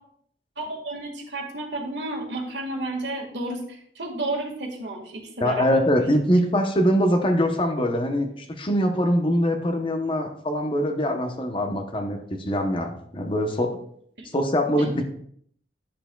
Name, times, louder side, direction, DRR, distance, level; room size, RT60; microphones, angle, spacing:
voice 1, 0.6-5.8 14.2-14.3 14.8-15.0, right 2 dB, 80° right, 1 dB, 1.7 m, -32 dB
voice 2, 5.4-13.8 14.3-15.0, equal, 30° left, 5 dB, 0.8 m, -23 dB
10.0 x 6.7 x 2.3 m, 0.64 s
head